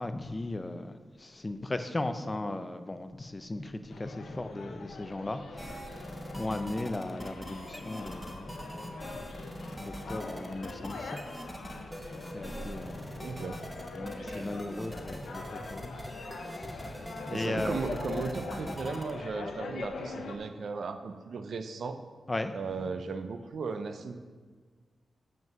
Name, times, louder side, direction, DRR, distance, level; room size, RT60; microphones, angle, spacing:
voice 1, 0.0-11.2 12.3-13.2 14.0-17.8 22.3-22.9, left 2 dB, 25° left, 9 dB, 0.5 m, -37 dB
sound 1, 3.9-20.4, left 4 dB, 85° left, 0.7 m, -43 dB
sound 2, 5.6-19.1, equal, 5° right, 0.9 m, -42 dB
voice 2, 13.2-13.6 14.2-14.6 17.3-22.0 22.5-24.2, right 4 dB, 70° right, 8 dB, 0.6 m, -36 dB
7.4 x 5.9 x 5.3 m, 1.5 s
cardioid pair, 90°, 0 cm